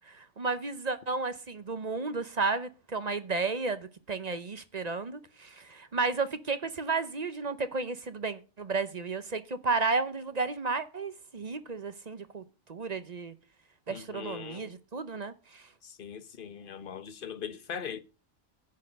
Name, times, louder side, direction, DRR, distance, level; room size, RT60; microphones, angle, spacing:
voice 1, 0.1-12.4 12.7-13.3 13.9-15.6, right 4 dB, 40° right, 0.8 m, -33 dB
voice 2, 13.9-14.7 15.8-18.0, left 7 dB, 50° left, 1.0 m, -40 dB
10.5 x 6.3 x 6.6 m
omnidirectional pair, 1.2 m